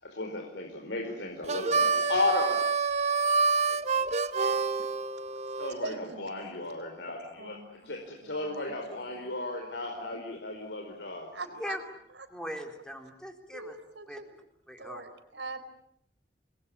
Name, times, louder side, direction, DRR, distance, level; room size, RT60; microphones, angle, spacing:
voice 1, 0.0-2.7 3.7-4.2 5.6-11.3, left 2 dB, 85° left, 2 dB, 4.7 m, -34 dB
Harmonica, 1.4-5.7, right 4 dB, 40° right, 1.0 m, -27 dB
voice 2, 5.8-6.3 7.4-8.8 9.3-9.4 10.1-10.2 11.3-11.8 12.1-12.3 13.5-14.4 14.8-15.6, right 3 dB, 85° right, 9 dB, 4.4 m, -42 dB
voice 3, 12.3-13.7 14.1-14.2 14.7-15.0, equal, 5° left, 4 dB, 4.1 m, -39 dB
29.0 x 22.0 x 8.7 m, 0.72 s
head